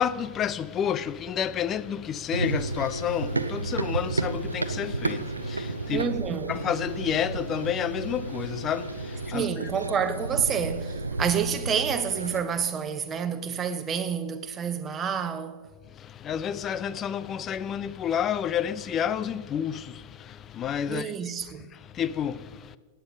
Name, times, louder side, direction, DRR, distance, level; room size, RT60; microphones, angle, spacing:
voice 1, 0.0-6.0 6.5-9.5 15.9-21.1 21.7-22.8, left 9 dB, 30° left, 0.5 m, -30 dB
Run, 2.3-12.4, right 3 dB, 80° right, 0.5 m, -32 dB
voice 2, 5.9-6.5 9.3-15.7 20.9-21.7, right 7 dB, 25° right, 1.0 m, -29 dB
16.5 x 9.0 x 5.3 m
figure-of-eight pair, 90°, 0 cm